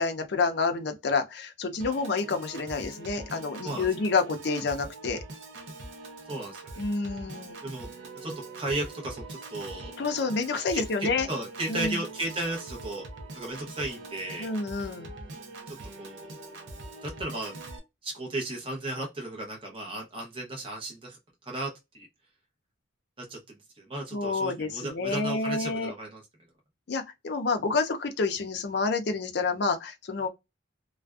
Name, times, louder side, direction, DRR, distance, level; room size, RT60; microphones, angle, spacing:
voice 1, 0.0-5.2 6.8-7.6 10.0-11.3 11.7-12.0 14.4-15.1 24.1-25.9 26.9-30.3, left 4 dB, 55° left, 0.5 m, -28 dB
Piano / Organ, 1.8-17.8, right 2 dB, 65° right, 0.6 m, -43 dB
voice 2, 6.3-6.8 7.6-7.9 8.2-9.9 10.7-13.1 13.3-14.5 16.0-16.3 17.0-17.6 18.0-22.1 23.2-26.2, right 2 dB, 25° right, 0.8 m, -35 dB
2.5 x 2.2 x 2.3 m
head